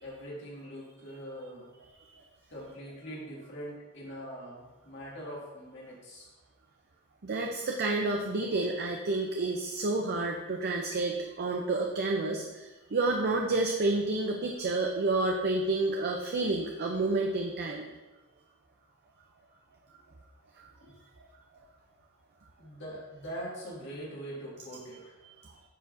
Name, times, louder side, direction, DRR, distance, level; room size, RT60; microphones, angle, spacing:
voice 1, 0.0-1.7 2.5-6.3 20.8-20.9 22.6-25.2, equal, 55° left, -5 dB, 2.2 m, -42 dB
voice 2, 7.2-17.9 20.6-20.7 25.4-25.5, right 2 dB, 45° right, 1 dB, 0.5 m, -30 dB
10.0 x 4.6 x 2.6 m, 1.1 s
head